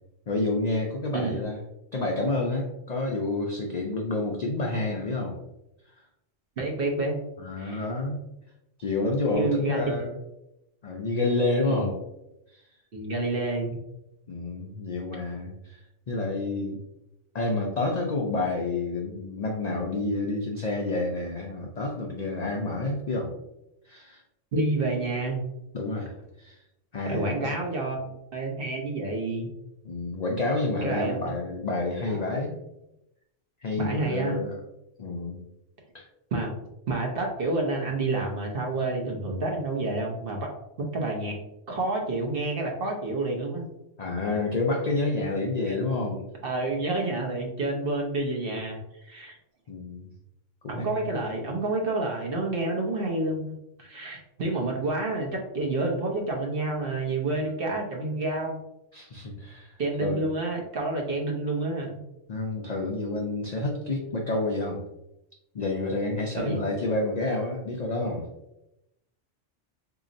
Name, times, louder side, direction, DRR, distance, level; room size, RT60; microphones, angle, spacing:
voice 1, 0.3-1.6 1.9-5.4 7.4-8.2 8.8-10.2 10.8-12.0 12.5-12.6 14.3-15.8 16.1-16.8 17.3-23.3 23.8-24.2 25.7-26.1 26.4-26.6 26.9-27.6 29.8-32.6 33.6-34.6 35.0-35.4 35.9-36.0 44.0-46.3 49.7-50.1 50.6-51.1 58.9-59.7 60.0-60.3 62.3-64.8 65.5-68.3, left 2 dB, 65° left, -1 dB, 0.4 m, -29 dB
voice 2, 6.6-7.2 7.6-7.9 9.3-10.0 11.6-11.9 12.9-13.8 24.5-25.4 27.1-29.5 30.8-31.2 32.1-32.2 33.8-34.4 36.3-36.5 36.9-40.5 40.9-41.4 41.7-43.7 45.7-45.8 46.4-49.4 50.7-58.6 59.8-62.0 66.4-66.6, right 2 dB, 55° right, 0 dB, 0.8 m, -29 dB
3.9 x 2.8 x 2.5 m, 0.87 s
omnidirectional pair, 1.3 m